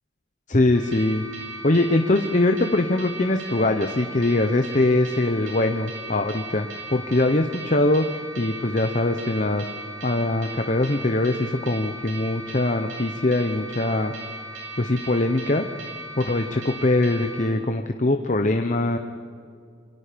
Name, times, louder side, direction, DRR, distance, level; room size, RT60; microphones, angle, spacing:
voice 1, 0.5-1.2 1.6-9.6 10.0-14.1 14.8-15.6 16.2-19.0, left 2 dB, 35° left, 6 dB, 0.9 m, -22 dB
sound 1, 0.7-17.4, right 2 dB, 75° right, 7.8 m, -38 dB
28.5 x 24.5 x 5.2 m, 2.3 s
head